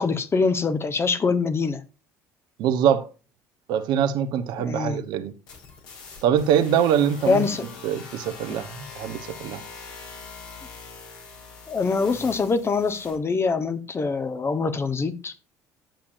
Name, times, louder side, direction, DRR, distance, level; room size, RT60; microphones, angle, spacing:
voice 1, 0.0-1.8 4.6-5.0 7.3-7.7 11.7-15.3, left 4 dB, 30° left, 1.2 m, -24 dB
voice 2, 2.6-3.1 3.7-5.3 6.2-7.4 7.8-9.6, right 9 dB, 65° right, 1.0 m, -23 dB
sound 1, 5.5-13.2, left 4 dB, 65° left, 3.2 m, -42 dB
10.5 x 7.2 x 2.6 m
hypercardioid pair, 60°, 8 cm